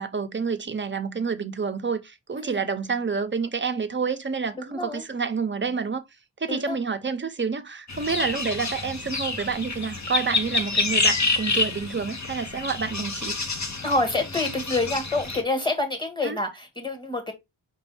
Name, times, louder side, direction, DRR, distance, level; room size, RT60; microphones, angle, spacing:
voice 1, 0.0-6.0 6.4-13.4 16.2-16.4, right 5 dB, 25° right, 0.6 m, -28 dB
voice 2, 2.3-2.7 4.5-5.0 6.5-6.7 13.8-17.3, left 2 dB, 10° left, 1.6 m, -27 dB
sound 1, 7.9-15.4, left 3 dB, 35° left, 0.9 m, -28 dB
5.2 x 2.6 x 3.4 m
wide cardioid pair, 65°, 49 cm